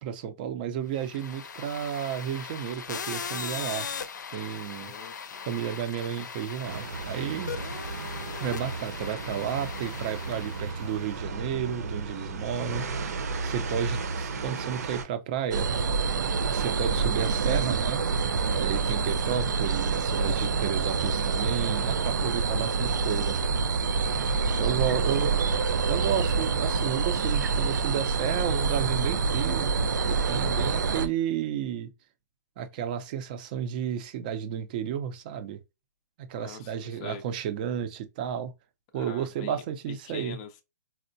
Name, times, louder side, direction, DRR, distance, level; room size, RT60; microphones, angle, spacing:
voice 1, 0.0-3.9 4.3-4.9 5.5-7.5 8.4-13.0 13.4-15.7 16.5-18.0 18.5-23.4 24.6-25.3 25.7-29.7 30.1-31.9 32.6-35.6 36.2-38.5 38.9-40.4, right 9 dB, 30° right, 0.5 m, -32 dB
sound 1, 0.9-11.1, left 6 dB, 80° left, 0.6 m, -39 dB
voice 2, 4.8-5.5 20.6-20.8 24.9-25.4 36.4-37.2 38.9-39.6 39.9-40.6, left 7 dB, 25° left, 0.4 m, -44 dB
sound 2, 6.6-15.0, right 4 dB, 60° right, 0.8 m, -34 dB
sound 3, 15.5-31.1, right 4 dB, 85° right, 0.5 m, -26 dB
4.4 x 2.1 x 2.6 m
hypercardioid pair, 160°, 10 cm